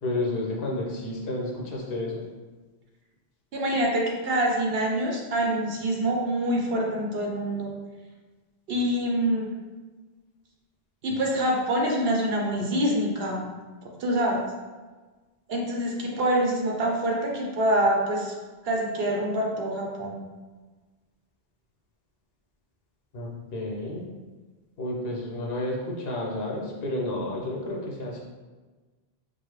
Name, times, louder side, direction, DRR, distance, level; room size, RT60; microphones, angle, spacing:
voice 1, 0.0-2.2 23.1-24.0 24.8-28.2, left 1 dB, 65° left, -3 dB, 1.0 m, -31 dB
voice 2, 3.5-7.7 8.7-9.5 11.0-13.4 14.0-14.5 15.5-18.3 18.6-20.2, right 1 dB, 70° right, -1 dB, 0.9 m, -25 dB
5.2 x 2.0 x 3.2 m, 1.3 s
omnidirectional pair, 1.1 m